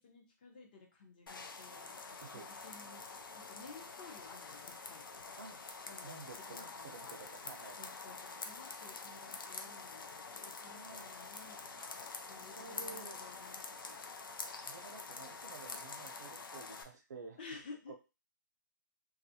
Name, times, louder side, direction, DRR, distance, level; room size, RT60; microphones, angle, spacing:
voice 1, 0.0-3.1 3.3-5.1 5.8-6.2 6.5-7.2 7.8-11.8 12.3-14.1 17.4-17.9, left 4 dB, 25° left, 1 dB, 0.5 m, -54 dB
sound 1, 1.3-16.8, left 4 dB, 80° left, 0.5 m, -47 dB
voice 2, 6.0-7.8 10.7-11.1 12.3-13.2 14.6-17.4 17.9-18.0, right 4 dB, 55° right, 5 dB, 0.6 m, -51 dB
2.4 x 2.4 x 2.7 m, 0.29 s
hypercardioid pair, 170°, 11 cm